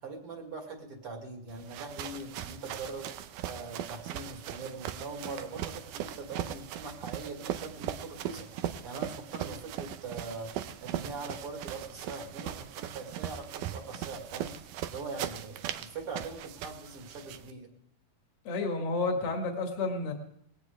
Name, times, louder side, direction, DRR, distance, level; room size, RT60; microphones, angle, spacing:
voice 1, 0.0-3.1 3.4-17.7, right 3 dB, 45° right, 2 dB, 3.1 m, -42 dB
sound 1, 1.5-17.5, right 11 dB, 80° right, 2.3 m, -39 dB
voice 2, 18.4-20.1, left 3 dB, 50° left, 3 dB, 2.9 m, -30 dB
19.5 x 18.0 x 3.5 m, 0.74 s
omnidirectional pair, 3.6 m